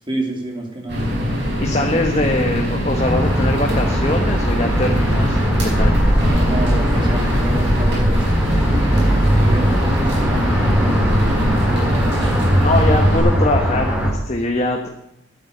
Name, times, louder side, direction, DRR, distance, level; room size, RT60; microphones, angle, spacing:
voice 1, 0.1-1.1 6.1-12.2, right 1 dB, 25° right, 1 dB, 2.8 m, -29 dB
sound 1, 0.9-13.2, equal, 55° right, 4.6 m, -22 dB
voice 2, 1.6-6.1 12.6-14.9, left 2 dB, 30° left, 2 dB, 1.2 m, -22 dB
sound 2, 3.0-14.1, equal, 5° right, 2.9 m, -19 dB
11.5 x 8.5 x 8.0 m, 0.80 s
head